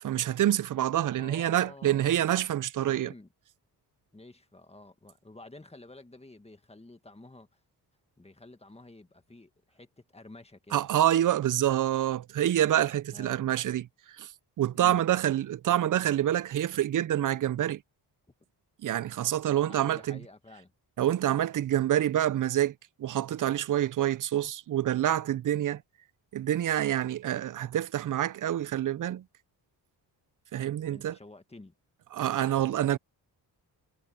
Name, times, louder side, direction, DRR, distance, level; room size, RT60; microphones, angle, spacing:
voice 1, 0.0-3.1 10.7-13.8 14.2-14.3 14.6-17.8 18.8-20.2 21.0-22.7 23.0-25.8 26.3-29.2 30.5-31.2 32.1-33.0, right 12 dB, 45° right, 0.5 m, -27 dB
voice 2, 1.2-2.3 2.8-3.3 4.1-7.6 8.2-10.9 13.1-13.5 14.7-15.0 19.7-20.7 30.9-31.7, left 2 dB, 15° left, 1.8 m, -50 dB
cardioid pair, 90°, 43 cm